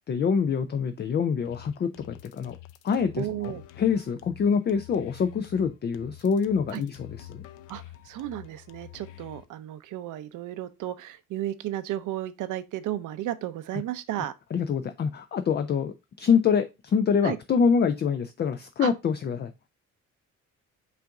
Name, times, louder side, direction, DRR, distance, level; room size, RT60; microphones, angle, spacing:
voice 1, 0.1-2.5 2.8-3.5 3.8-7.4 14.5-19.5, left 6 dB, 35° left, 0.4 m, -25 dB
sound 1, 1.4-9.5, left 13 dB, 80° left, 0.5 m, -47 dB
voice 2, 3.2-3.6 6.7-6.8 7.7-14.3 17.2-17.4 18.8-18.9, right 13 dB, 80° right, 0.6 m, -33 dB
5.6 x 2.6 x 3.6 m
cardioid pair, 90°, 30 cm